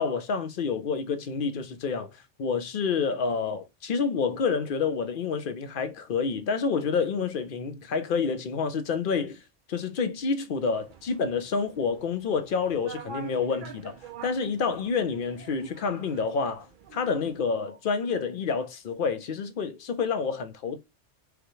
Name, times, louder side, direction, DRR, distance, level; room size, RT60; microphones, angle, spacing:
voice 1, 0.0-9.4 9.7-14.0 14.2-16.7 16.9-20.8, left 5 dB, 55° left, 0.7 m, -28 dB
sound 1, 10.6-17.4, right 4 dB, 55° right, 0.6 m, -47 dB
5.0 x 2.2 x 3.0 m
omnidirectional pair, 1.2 m